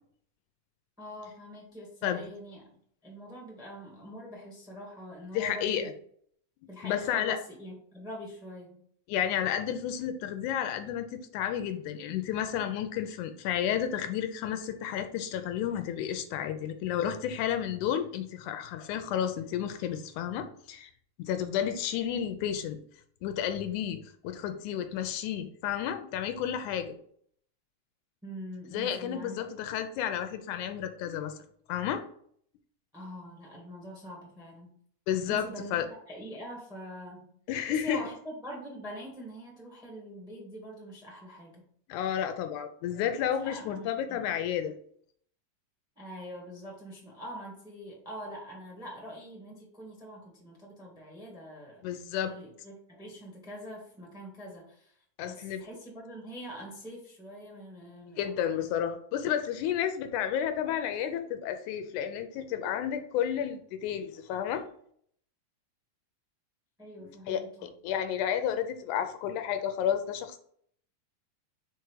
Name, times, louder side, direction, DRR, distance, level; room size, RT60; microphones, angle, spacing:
voice 1, 1.0-2.8 3.0-6.0 6.7-8.8 28.2-29.4 32.9-34.7 35.3-35.7 36.1-37.3 37.7-41.6 43.4-44.2 45.9-51.8 52.2-55.0 55.3-58.8 66.8-67.6, equal, ahead, -1 dB, 0.9 m, -44 dB
voice 2, 5.3-5.9 6.8-7.4 9.1-20.9 21.2-22.8 23.2-27.0 28.7-31.4 31.7-32.0 35.1-35.9 37.5-38.0 41.9-44.7 51.8-52.3 55.2-55.6 58.2-64.6 67.1-70.4, left 9 dB, 80° left, 8 dB, 2.0 m, -31 dB
4.6 x 4.6 x 4.7 m, 0.63 s
omnidirectional pair, 3.6 m